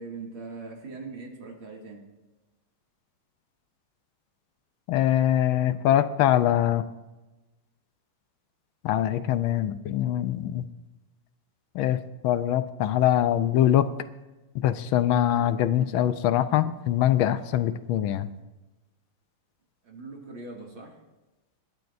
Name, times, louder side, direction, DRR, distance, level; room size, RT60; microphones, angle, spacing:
voice 1, 0.0-2.0 19.8-21.0, right 3 dB, 70° right, 0 dB, 3.1 m, -41 dB
voice 2, 4.9-6.8 8.8-10.7 11.7-12.0 12.2-13.9 14.5-18.3, left 11 dB, 75° left, 12 dB, 1.4 m, -23 dB
27.0 x 11.5 x 2.6 m, 1.1 s
omnidirectional pair, 2.3 m